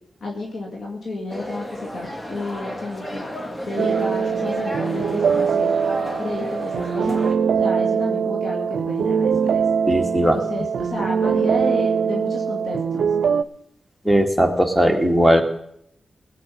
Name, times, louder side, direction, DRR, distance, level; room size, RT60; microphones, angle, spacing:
voice 1, 0.2-3.2 3.6-5.8 6.2-7.2 7.6-9.7 10.3-13.1, left 2 dB, 75° left, 0 dB, 2.2 m, -31 dB
sound 1, 1.3-7.3, equal, 25° left, 2.0 m, -32 dB
sound 2, 3.8-13.4, right 6 dB, 90° right, 0.4 m, -22 dB
voice 2, 9.9-10.4 14.0-15.4, equal, ahead, 5 dB, 2.1 m, -18 dB
19.0 x 8.3 x 5.5 m, 0.75 s
cardioid pair, 55°, 0 cm